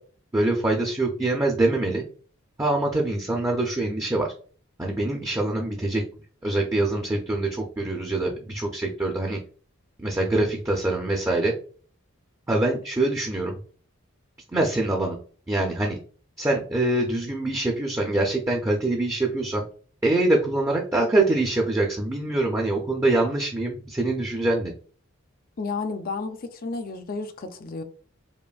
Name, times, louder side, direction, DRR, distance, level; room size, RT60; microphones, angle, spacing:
voice 1, 0.3-2.0 2.6-4.3 4.8-6.0 6.4-9.4 10.0-11.5 12.5-13.5 14.5-15.2 15.5-16.0 16.4-19.7 20.0-24.7, right 2 dB, 15° right, 0.5 m, -24 dB
voice 2, 25.6-27.8, left 4 dB, 45° left, 0.5 m, -32 dB
5.0 x 2.5 x 2.3 m
head